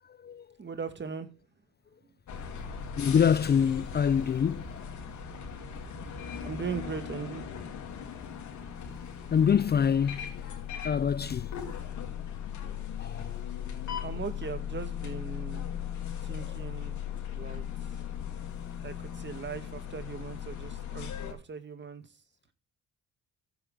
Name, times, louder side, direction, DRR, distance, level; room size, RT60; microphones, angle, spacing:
voice 1, 0.0-0.5 3.0-4.8 9.3-10.4 10.8-11.6 13.0-13.4 13.8-13.9 16.3-16.6, left 7 dB, 35° left, 0.5 m, -26 dB
voice 2, 0.6-1.4 6.4-7.5 14.0-15.7 16.2-17.0 17.3-17.6 18.8-22.1, right 5 dB, 35° right, 2.0 m, -39 dB
sound 1, 2.3-21.3, left 8 dB, 75° left, 3.5 m, -38 dB
15.0 x 9.3 x 3.9 m
cardioid pair, 90°, 30 cm